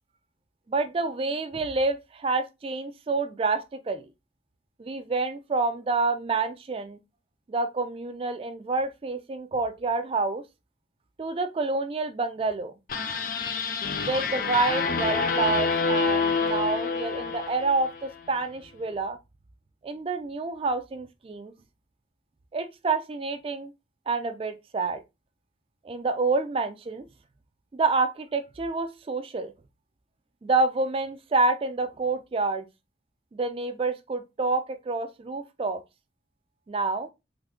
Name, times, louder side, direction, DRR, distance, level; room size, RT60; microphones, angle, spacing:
voice 1, 0.7-4.0 4.8-7.0 7.5-10.4 11.2-12.7 14.0-19.2 19.8-21.5 22.5-23.7 24.1-25.0 25.8-27.1 27.7-29.5 30.4-32.7 33.3-35.8 36.7-37.1, right 3 dB, 30° right, 0.3 m, -28 dB
sound 1, 12.9-18.2, left 4 dB, 50° left, 0.4 m, -27 dB
3.2 x 2.1 x 3.6 m
head